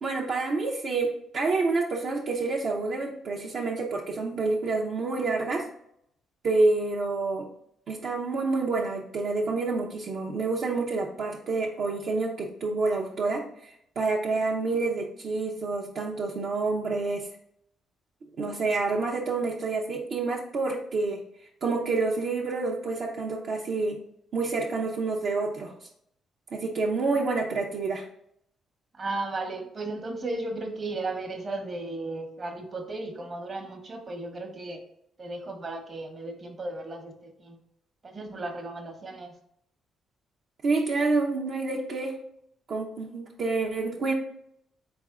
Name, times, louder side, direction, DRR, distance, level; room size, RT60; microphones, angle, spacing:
voice 1, 0.0-5.7 6.4-7.5 7.9-17.3 18.4-21.2 21.6-24.0 24.3-25.7 26.5-28.1 40.6-42.2 42.7-44.1, right 3 dB, 60° right, -1 dB, 0.6 m, -28 dB
voice 2, 29.0-34.8 35.2-37.6 38.0-39.3, right 2 dB, 40° right, 4 dB, 1.0 m, -35 dB
4.2 x 3.5 x 3.6 m, 0.73 s
cardioid pair, 90°, 0 cm